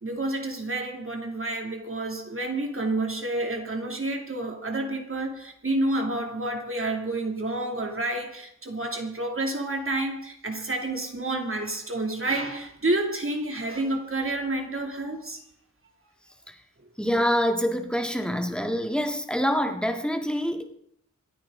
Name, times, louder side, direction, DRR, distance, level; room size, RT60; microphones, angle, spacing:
voice 1, 0.0-15.4, right 2 dB, 45° right, 2.7 m, -29 dB
voice 2, 17.0-20.6, equal, 5° left, 2.0 m, -26 dB
27.0 x 9.5 x 3.8 m
wide cardioid pair, 85°, 31 cm